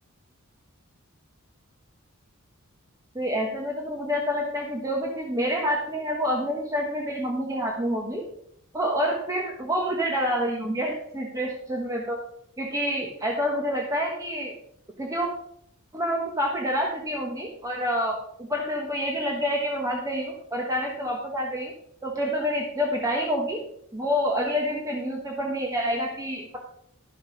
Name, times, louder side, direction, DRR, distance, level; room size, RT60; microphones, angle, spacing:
voice 1, 3.1-8.2 8.7-12.2 12.6-14.5 15.0-15.3 15.9-21.7 22.0-23.6 23.9-26.6, equal, 15° right, -1 dB, 1.2 m, -27 dB
12.0 x 6.4 x 4.9 m, 0.70 s
head